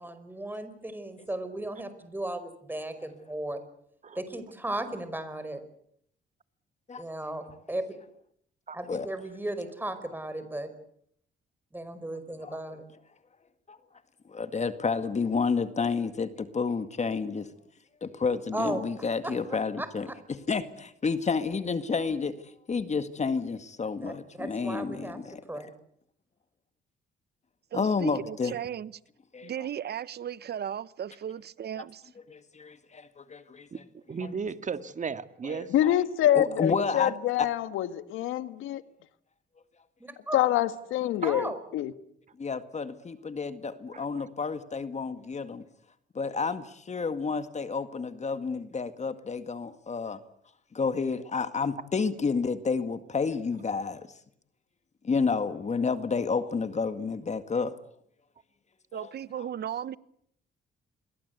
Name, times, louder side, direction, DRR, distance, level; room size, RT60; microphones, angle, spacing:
voice 1, 0.0-3.6 4.2-5.6 7.0-7.8 8.7-10.7 11.7-12.8 18.5-18.8 19.2-19.3 19.8-20.1 24.0-25.2 25.5-25.7 40.0-40.4 41.2-41.6, right 1 dB, 10° right, 5.2 m, -35 dB
voice 2, 6.9-7.4 8.9-9.1 12.4-12.6 13.7-13.8 14.3-17.5 18.0-22.4 22.7-25.7 27.7-28.5 29.3-29.5 32.3-33.7 34.2-34.3 35.4-36.0 36.3-37.1 37.4-37.5 42.4-45.6 46.2-50.2 50.7-54.1 55.0-57.7 58.9-59.1, left 5 dB, 35° left, 2.0 m, -30 dB
voice 3, 27.7-28.9 29.4-32.0 58.9-60.0, right 9 dB, 55° right, 1.1 m, -36 dB
voice 4, 33.7-35.7 41.2-41.3 43.9-44.3 46.4-46.6, right 5 dB, 40° right, 2.0 m, -36 dB
voice 5, 35.7-38.8 40.3-41.9, left 12 dB, 90° left, 1.6 m, -26 dB
28.5 x 22.5 x 8.3 m
cardioid pair, 90°, 20 cm